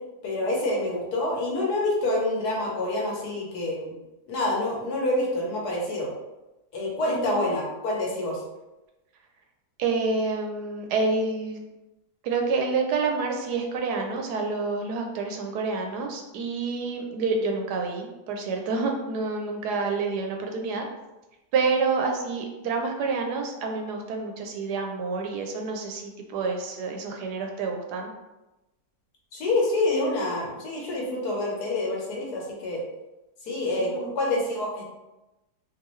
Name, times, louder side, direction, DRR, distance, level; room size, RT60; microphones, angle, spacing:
voice 1, 0.2-4.0 4.3-6.1 6.7-8.4 29.3-32.8 33.4-34.9, left 2 dB, 70° left, -3 dB, 1.4 m, -27 dB
voice 2, 7.1-7.4 9.8-11.6 12.2-20.9 21.5-28.1 33.9-34.1, right 4 dB, 75° right, 2 dB, 1.1 m, -28 dB
3.7 x 2.6 x 3.0 m, 1.0 s
omnidirectional pair, 1.8 m